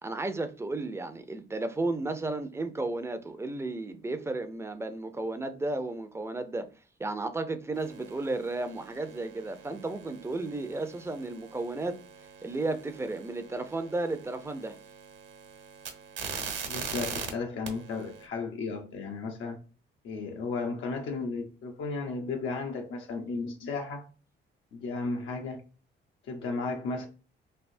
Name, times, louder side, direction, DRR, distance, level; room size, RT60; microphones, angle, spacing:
voice 1, 0.0-6.7 7.0-12.0 12.4-14.8, right 2 dB, 15° right, 0.5 m, -33 dB
sound 1, 7.7-17.3 17.7-18.3, right 6 dB, 70° right, 1.1 m, -42 dB
voice 2, 16.7-19.6 20.0-24.1 24.7-25.6 26.3-27.1, left 4 dB, 75° left, 0.7 m, -34 dB
3.4 x 2.6 x 2.6 m
cardioid pair, 90°, 20 cm